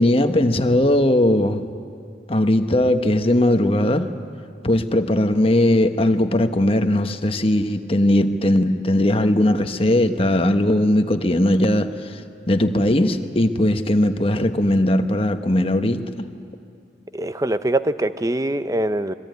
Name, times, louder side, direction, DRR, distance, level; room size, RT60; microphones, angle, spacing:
voice 1, 0.0-1.7 2.3-4.1 4.6-12.2 12.5-16.3, left 1 dB, 30° left, 7 dB, 1.1 m, -19 dB
voice 2, 17.1-19.1, right 1 dB, 20° right, 12 dB, 0.6 m, -23 dB
25.0 x 22.0 x 9.4 m, 2.4 s
head